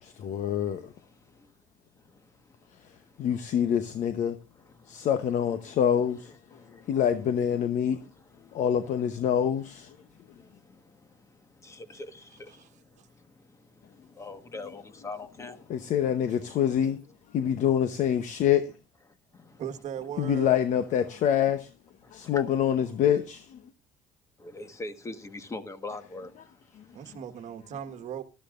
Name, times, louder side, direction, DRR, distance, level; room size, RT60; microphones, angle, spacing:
voice 1, 0.0-0.9 3.2-4.4 4.9-6.3 6.9-8.0 8.5-10.0 15.7-17.0 17.3-18.7 20.2-21.7 22.1-23.6 26.8-26.9, left 9 dB, 50° left, 0.9 m, -26 dB
voice 2, 11.6-12.1 14.2-15.6 22.3-22.4 24.5-26.3, left 2 dB, 20° left, 1.4 m, -39 dB
voice 3, 19.6-20.6 26.9-28.2, right 9 dB, 50° right, 1.4 m, -38 dB
18.5 x 12.5 x 2.5 m
cardioid pair, 145°, 16 cm